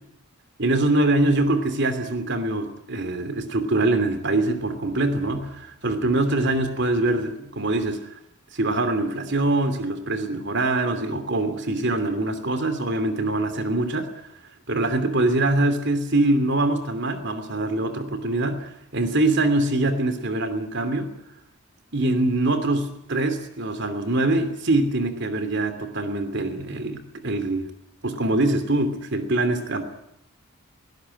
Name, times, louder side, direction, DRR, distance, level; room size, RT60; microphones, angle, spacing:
voice 1, 0.6-8.0 8.5-14.1 14.7-21.1 21.9-27.7 28.0-29.8, right 2 dB, 50° right, 10 dB, 2.9 m, -23 dB
20.5 x 18.0 x 9.9 m, 0.77 s
head